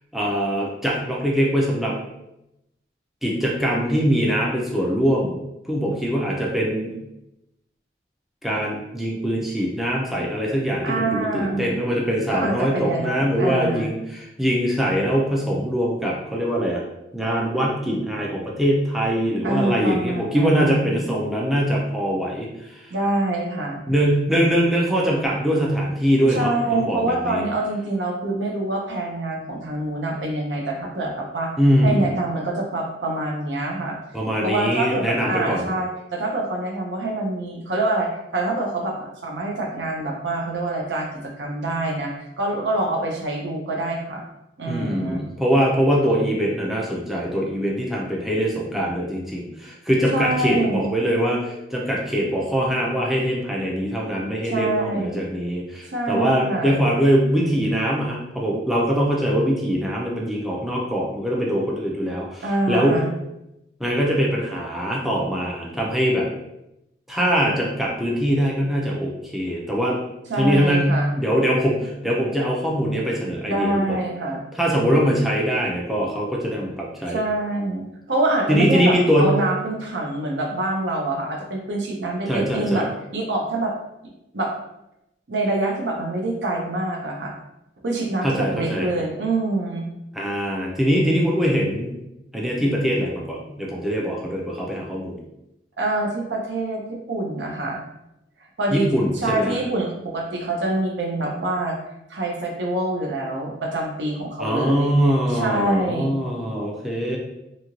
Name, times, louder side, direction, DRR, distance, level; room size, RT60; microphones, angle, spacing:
voice 1, 0.1-2.0 3.2-5.4 5.6-7.0 8.4-16.8 17.1-22.9 23.9-27.4 31.6-32.1 34.1-35.7 44.7-63.0 63.8-66.3 67.1-70.0 70.3-74.0 74.6-77.2 78.5-79.4 82.3-82.8 88.2-88.9 90.1-92.0 92.3-95.2 98.7-99.6 104.4-107.2, equal, ahead, -3 dB, 0.4 m, -22 dB
voice 2, 10.8-11.8 12.3-13.9 19.4-20.9 22.9-23.8 26.3-31.5 31.8-34.0 34.4-44.2 44.6-45.2 50.1-50.9 54.5-55.3 55.9-56.8 62.4-63.1 70.3-71.1 73.5-74.4 77.1-82.9 83.1-83.7 84.3-84.5 85.3-87.3 87.8-89.9 95.8-97.8 98.6-98.9 99.1-101.8 102.1-104.9 105.3-106.1, right 2 dB, 75° right, 1 dB, 0.6 m, -25 dB
2.8 x 2.5 x 2.9 m, 0.88 s
head